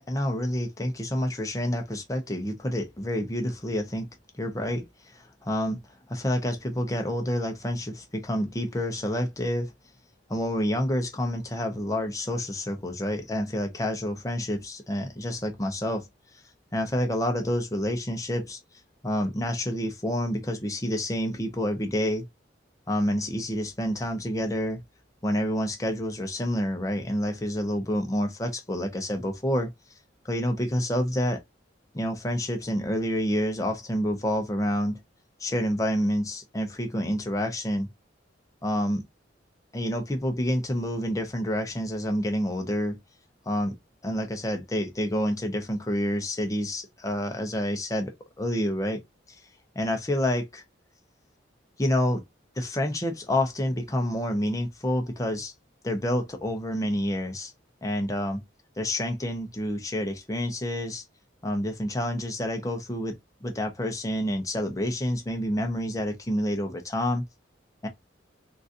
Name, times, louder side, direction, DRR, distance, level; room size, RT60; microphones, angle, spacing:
voice 1, 0.1-4.1 4.4-5.8 6.1-9.7 10.3-16.1 16.7-18.6 19.0-22.2 22.9-24.8 25.2-29.7 30.2-31.4 31.9-35.0 35.4-37.9 38.6-39.0 39.7-43.0 43.5-43.7 44.0-49.0 49.7-50.6 51.8-52.2 52.6-55.5 55.8-57.5 57.8-58.4 58.8-61.0 61.4-63.1 63.4-67.2 67.8-67.9, equal, 15° left, 0.8 m, -28 dB
3.8 x 2.6 x 2.6 m
head